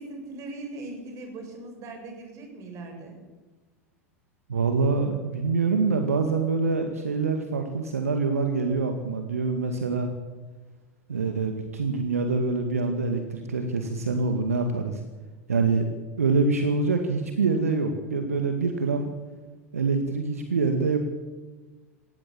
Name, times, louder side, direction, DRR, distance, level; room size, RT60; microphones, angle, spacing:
voice 1, 0.0-3.2, right 2 dB, 40° right, 3 dB, 7.3 m, -39 dB
voice 2, 4.5-10.1 11.1-15.0 15.5-15.9 16.2-19.1 19.7-21.0, right 4 dB, 80° right, 6 dB, 2.1 m, -25 dB
18.5 x 16.0 x 8.8 m, 1.3 s
figure-of-eight pair, 85°, 8 cm